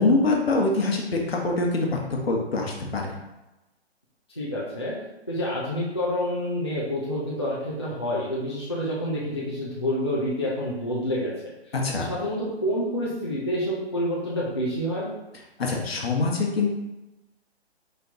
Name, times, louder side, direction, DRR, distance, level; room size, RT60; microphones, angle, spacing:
voice 1, 0.0-2.0 2.3-3.1 11.7-12.1 15.6-16.7, left 3 dB, 60° left, 0 dB, 1.1 m, -24 dB
voice 2, 4.4-4.9 5.3-11.3 12.1-15.1, equal, 25° left, -8 dB, 0.5 m, -28 dB
4.5 x 4.2 x 2.7 m, 0.98 s
hypercardioid pair, 180°, 33 cm